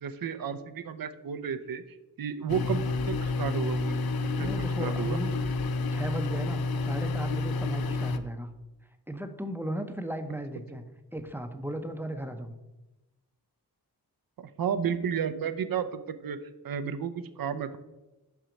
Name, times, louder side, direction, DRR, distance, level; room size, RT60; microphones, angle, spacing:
voice 1, 0.0-4.0 4.2-4.5 4.8-5.2 14.4-16.4 16.6-17.8, right 7 dB, 60° right, 11 dB, 0.6 m, -32 dB
sound 1, 2.5-8.2, left 3 dB, 65° left, 0.5 m, -29 dB
voice 2, 2.5-2.8 4.4-5.3 5.9-8.5 9.1-10.8 11.1-12.6, right 1 dB, 5° right, 7 dB, 0.7 m, -36 dB
5.5 x 4.6 x 5.1 m, 1.0 s
cardioid pair, 45°, 40 cm